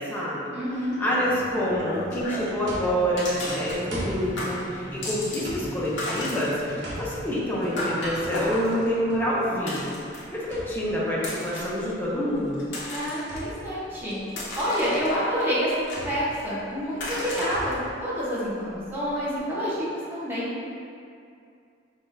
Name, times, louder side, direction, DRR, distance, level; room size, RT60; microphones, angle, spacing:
voice 1, 0.0-0.5 1.0-12.6, equal, 10° left, -7 dB, 0.6 m, -27 dB
voice 2, 0.5-0.9 12.9-14.2 14.5-17.7 18.0-20.5, equal, 10° right, -10 dB, 1.0 m, -28 dB
sound 1, 0.9-2.7 3.2-4.1 4.4-5.5 5.8-10.4 11.1-11.8 12.4-13.4 13.9-15.4 15.9-16.5 17.0-17.7, left 1 dB, 85° left, 0.9 m, -35 dB
sound 2, 2.7-19.4, equal, 90° right, 1.0 m, -42 dB
sound 3, 3.3-15.1, equal, 45° left, 0.9 m, -44 dB
5.6 x 2.5 x 2.6 m, 2.4 s
head